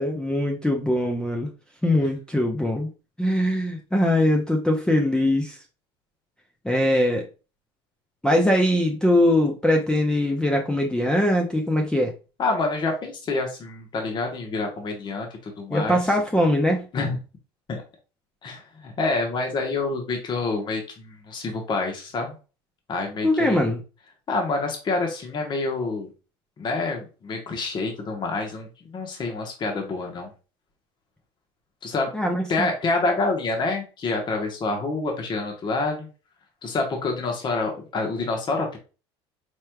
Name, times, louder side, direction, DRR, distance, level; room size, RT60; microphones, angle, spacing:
voice 1, 0.0-1.5 1.8-2.9 3.2-5.6 6.6-7.3 8.2-12.1 15.7-16.8 23.2-23.8 32.1-32.7, left 1 dB, 5° left, 1 dB, 0.6 m, -22 dB
voice 2, 12.4-16.0 16.9-17.2 17.7-17.8 18.4-22.3 22.9-23.6 24.3-26.1 26.6-30.3 31.8-32.1 32.5-36.1 36.6-38.8, left 3 dB, 35° left, 2 dB, 1.0 m, -27 dB
4.5 x 3.2 x 2.2 m, 0.33 s
hypercardioid pair, 85°, 14 cm